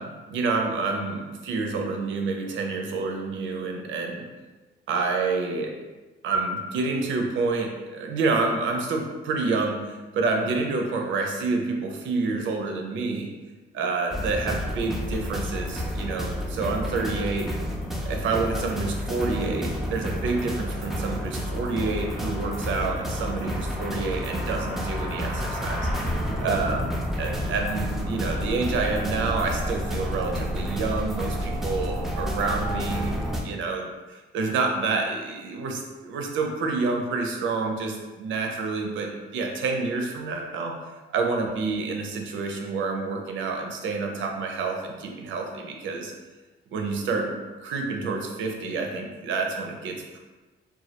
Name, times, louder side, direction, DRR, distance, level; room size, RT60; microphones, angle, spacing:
voice 1, 0.0-4.3 4.9-5.7 6.2-13.3 13.7-17.5 18.1-25.9 26.4-33.2 33.4-40.8 41.1-46.1 46.7-50.2, right 3 dB, 75° right, 2 dB, 0.5 m, -28 dB
sound 1, 14.1-33.4, equal, ahead, 0.4 m, -30 dB
2.2 x 2.1 x 2.8 m, 1.2 s
cardioid pair, 90°, 20 cm